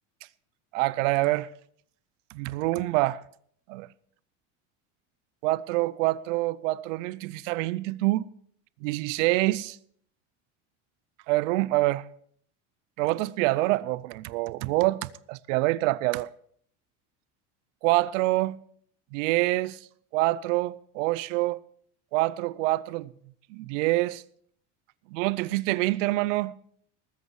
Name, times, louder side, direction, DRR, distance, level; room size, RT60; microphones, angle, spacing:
voice 1, 0.7-1.5 2.3-3.2 3.7-3.9 5.4-8.3 8.8-9.8 11.3-12.1 13.0-16.3 17.8-18.6 19.1-19.8 20.1-21.6 22.1-23.1 23.5-24.2 25.1-26.5, right 19 dB, 90° right, 0.7 m, -26 dB
19.5 x 8.2 x 4.8 m
cardioid pair, 145°, 36 cm